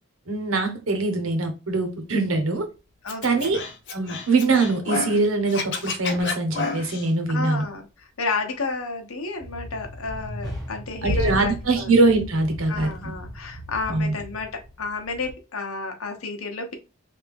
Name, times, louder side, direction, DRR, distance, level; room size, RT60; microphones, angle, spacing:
voice 1, 0.3-2.7 3.2-3.6 3.9-7.6 11.0-13.1 13.9-14.1, right 3 dB, 80° right, 1.0 m, -23 dB
sound 1, 2.5-2.8 8.2-8.3 9.4-15.3, left 1 dB, ahead, 1.2 m, -35 dB
voice 2, 3.0-3.5 7.3-11.9 12.7-16.7, left 3 dB, 90° left, 1.0 m, -31 dB
Scratching (performance technique), 3.1-5.2 5.5-7.1, left 4 dB, 55° left, 0.7 m, -30 dB
3.4 x 2.6 x 3.4 m
head